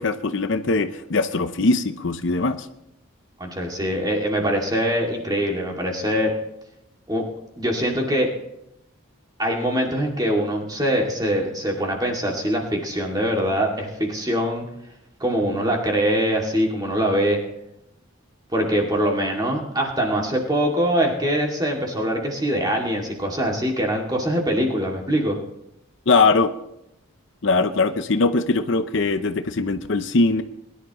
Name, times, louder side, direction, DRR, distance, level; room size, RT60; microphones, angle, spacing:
voice 1, 0.0-2.6 26.1-26.5 27.4-30.4, left 3 dB, 60° left, 9 dB, 0.7 m, -21 dB
voice 2, 3.4-6.3 7.1-7.2 7.6-8.3 9.4-14.7 15.2-17.4 18.5-25.4, equal, 20° right, 0 dB, 2.4 m, -23 dB
21.5 x 11.0 x 3.1 m, 0.82 s
head